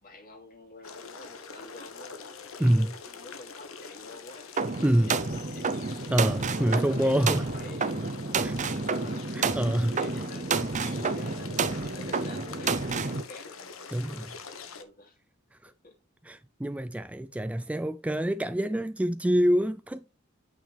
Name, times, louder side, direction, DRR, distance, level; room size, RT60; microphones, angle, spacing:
voice 1, 0.0-2.2 2.6-4.5 4.9-5.7 6.4-8.0 8.6-9.3 9.6-10.5 11.0-11.5 11.8-13.7 14.8-15.2 15.6-15.9, left 2 dB, 45° left, 2.6 m, -48 dB
sound 1, 0.8-14.8, left 5 dB, 85° left, 1.2 m, -44 dB
voice 2, 2.6-2.9 4.8-5.2 6.1-7.5 8.4-8.6 9.3-10.0 13.9-14.4 15.5-15.7 16.2-20.0, equal, 5° right, 0.3 m, -26 dB
sound 2, 4.6-13.2, right 4 dB, 35° right, 0.7 m, -30 dB
8.7 x 6.0 x 3.4 m
head